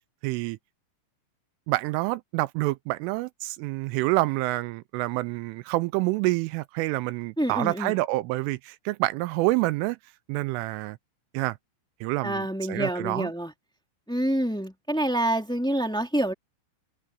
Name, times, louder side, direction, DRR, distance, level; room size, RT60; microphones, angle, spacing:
voice 1, 0.2-0.6 1.7-10.0 10.3-11.0 11.3-11.6 12.0-13.3, right 20 dB, 85° right, 3.0 m, -27 dB
voice 2, 7.4-7.9 12.2-13.5 14.1-16.3, right 1 dB, ahead, 1.4 m, -27 dB
omnidirectional pair, 5.9 m